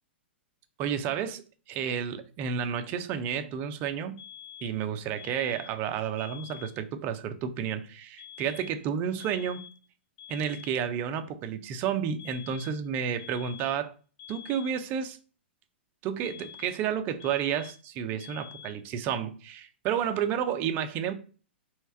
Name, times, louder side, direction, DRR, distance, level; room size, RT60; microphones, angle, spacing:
voice 1, 0.8-1.4 1.7-4.2 4.6-9.6 10.3-13.9 14.3-15.2 16.0-21.1, right 8 dB, 30° right, 0.6 m, -31 dB
sound 1, 4.2-4.8 5.2-5.8 6.2-6.8 8.2-8.9 9.2-9.9 10.2-10.9 12.2-12.9 13.2-13.9 14.2-14.9 16.2-16.9 17.2-17.9 18.2-18.9, left 10 dB, 45° left, 0.6 m, -47 dB
3.3 x 3.1 x 4.3 m
figure-of-eight pair, 105°, 6 cm